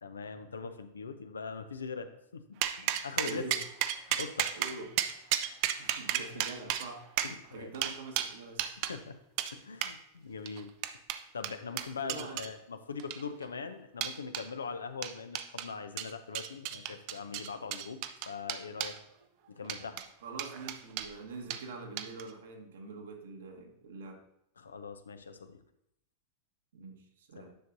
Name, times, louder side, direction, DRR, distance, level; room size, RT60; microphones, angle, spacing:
voice 1, 0.0-2.4 2.8-3.4 4.1-4.5 6.4-6.5 7.2-7.7 8.8-9.1 9.5-10.8 11.3-19.0 19.5-20.0 24.6-25.6 27.4-27.5, left 5 dB, 70° left, 9 dB, 0.6 m, -41 dB
sound 1, 2.6-9.0 9.4-9.5 9.8-10.0 10.5-12.5 13.0-13.4 14.0-14.5 15.0-15.7 16.0-19.0 19.6-20.1 20.4-21.1 21.5-21.6 22.0-22.3, right 11 dB, 45° right, 0.5 m, -34 dB
voice 2, 3.2-3.7 4.5-5.0 5.4-5.5 5.8-7.0 7.5-8.8 12.0-12.5 20.2-24.2 26.7-27.6, right 3 dB, 60° right, 3 dB, 1.3 m, -44 dB
10.0 x 6.6 x 2.6 m, 0.79 s
figure-of-eight pair, 90°, 0 cm